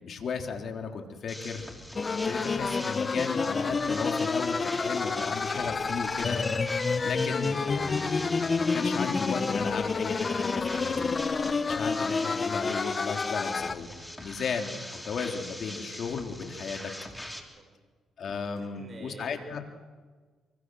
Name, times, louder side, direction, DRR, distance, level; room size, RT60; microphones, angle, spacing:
voice 1, 0.0-1.6 2.2-6.4 7.0-11.1 11.4-13.9 14.2-16.9 18.2-19.6, left 5 dB, 55° left, 4 dB, 3.3 m, -35 dB
sound 1, 1.3-17.4, equal, 5° left, 3.7 m, -42 dB
sound 2, 1.9-13.7, left 4 dB, 35° left, 1.1 m, -29 dB
voice 2, 18.6-19.4, right 3 dB, 40° right, 3 dB, 6.6 m, -48 dB
27.0 x 24.0 x 6.3 m, 1.4 s
cardioid pair, 90°, 0 cm